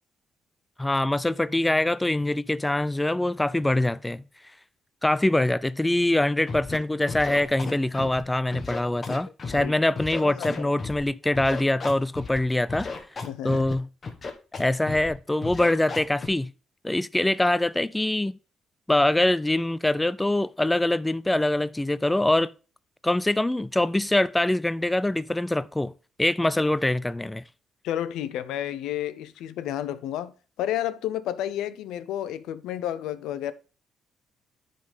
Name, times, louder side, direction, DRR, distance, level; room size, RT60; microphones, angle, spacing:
voice 1, 0.8-4.2 5.0-13.1 13.4-13.9 14.6-16.5 16.8-18.4 18.9-22.5 23.0-25.9 26.2-27.4, left 1 dB, 10° left, 0.3 m, -24 dB
Scratching (performance technique), 6.5-6.8 7.1-8.2 8.5-9.6 10.0-11.0 11.4-12.4 12.7-13.7 14.0-14.6 14.9-15.1 15.4-16.3, left 4 dB, 40° left, 1.5 m, -34 dB
voice 2, 10.2-10.7 13.3-13.6 27.8-33.5, left 11 dB, 90° left, 0.6 m, -31 dB
9.9 x 3.9 x 5.2 m
cardioid pair, 90°, 0 cm